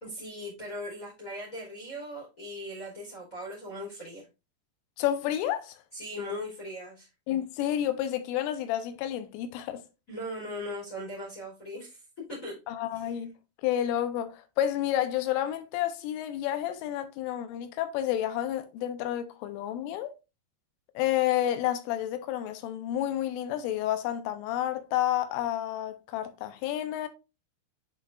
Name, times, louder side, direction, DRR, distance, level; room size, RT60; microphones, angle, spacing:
voice 1, 0.0-4.2 5.9-7.1 10.1-12.0 12.3-12.6 12.9-13.2, left 1 dB, 25° left, 1.9 m, -39 dB
voice 2, 5.0-5.8 7.3-9.8 12.7-13.3 13.6-20.1 21.0-27.1, left 12 dB, 85° left, 3.2 m, -30 dB
10.0 x 4.1 x 2.4 m
omnidirectional pair, 5.7 m